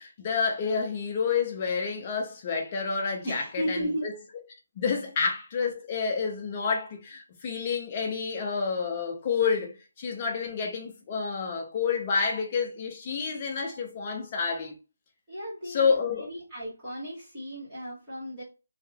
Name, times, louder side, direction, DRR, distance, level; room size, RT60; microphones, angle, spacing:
voice 1, 0.0-4.1 4.8-14.8 15.6-16.3, left 5 dB, 20° left, 0.5 m, -29 dB
voice 2, 3.2-4.0 15.3-18.4, equal, 10° right, 1.6 m, -35 dB
3.2 x 2.7 x 2.2 m
hypercardioid pair, 175°, 0 cm